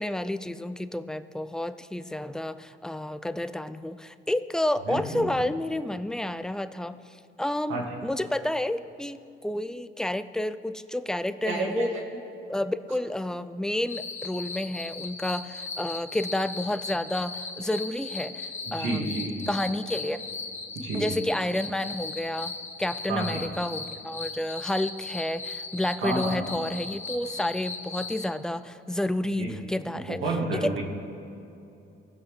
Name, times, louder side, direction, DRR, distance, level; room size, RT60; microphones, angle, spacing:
voice 1, 0.0-11.9 12.5-19.1 19.5-20.2 20.9-22.5 22.8-30.2 30.5-30.7, left 1 dB, 5° left, 12 dB, 0.3 m, -30 dB
voice 2, 4.9-5.3 7.7-7.8 11.4-11.9 18.8-19.3 20.7-21.1 23.1-23.4 26.0-26.4 29.4-29.5 29.9-30.8, right 3 dB, 85° right, -2 dB, 1.9 m, -30 dB
sound 1, 13.9-28.3, left 4 dB, 35° left, 0.9 m, -37 dB
18.0 x 6.2 x 3.2 m, 2.7 s
cardioid pair, 90°, 20 cm